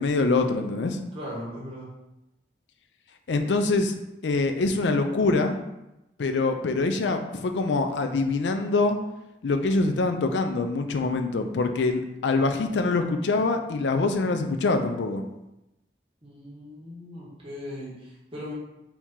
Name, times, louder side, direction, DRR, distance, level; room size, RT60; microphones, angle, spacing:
voice 1, 0.0-1.0 3.3-3.9 4.2-5.6 6.2-9.0 9.4-15.2, left 3 dB, 80° left, 6 dB, 0.4 m, -24 dB
voice 2, 1.1-1.9 16.2-18.5, left 1 dB, 30° right, -6 dB, 1.3 m, -38 dB
4.5 x 2.8 x 3.6 m, 0.91 s
head